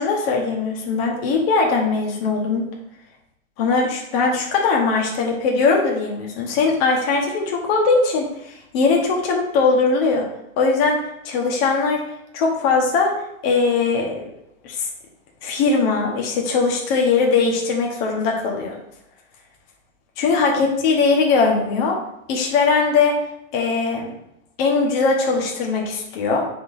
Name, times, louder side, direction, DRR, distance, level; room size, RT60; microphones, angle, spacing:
voice 1, 0.0-2.7 3.6-10.3 10.6-12.0 12.3-14.3 14.6-14.9 15.4-18.8 20.2-22.0 22.3-23.2 23.5-24.1 24.6-26.5, left 4 dB, 45° left, 0 dB, 1.3 m, -20 dB
9.5 x 4.0 x 2.7 m, 0.82 s
hypercardioid pair, 135°, 41 cm